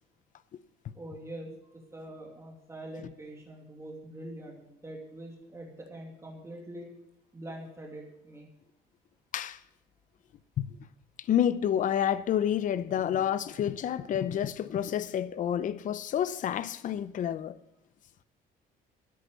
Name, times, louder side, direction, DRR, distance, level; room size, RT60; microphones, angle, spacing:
voice 1, 0.9-6.9 7.3-8.5, right 1 dB, 15° right, 2.7 m, -44 dB
voice 2, 11.2-17.6, left 10 dB, 50° left, 0.7 m, -29 dB
13.0 x 10.5 x 6.8 m
cardioid pair, 110°, 17 cm